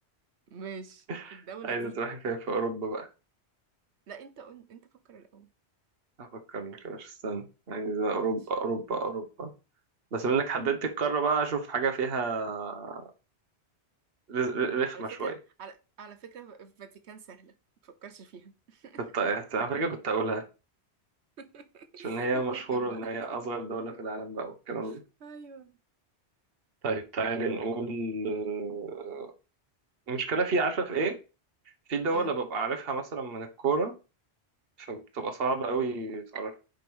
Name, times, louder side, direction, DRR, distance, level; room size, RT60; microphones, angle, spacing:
voice 1, 0.5-1.0 1.3-2.0 4.1-5.5 8.2-8.3 14.9-17.5 17.8-19.0 21.4-23.4 24.8-25.7 30.1-30.2 32.1-32.3, right 6 dB, 80° right, 1.2 m, -46 dB
voice 2, 1.1-3.1 6.2-9.5 10.1-13.0 14.3-15.3 19.0-20.4 22.0-25.0 26.8-29.3 30.1-31.2 31.9-33.9 34.8-36.6, right 4 dB, 60° right, 1.3 m, -30 dB
5.2 x 5.1 x 6.2 m
omnidirectional pair, 1.1 m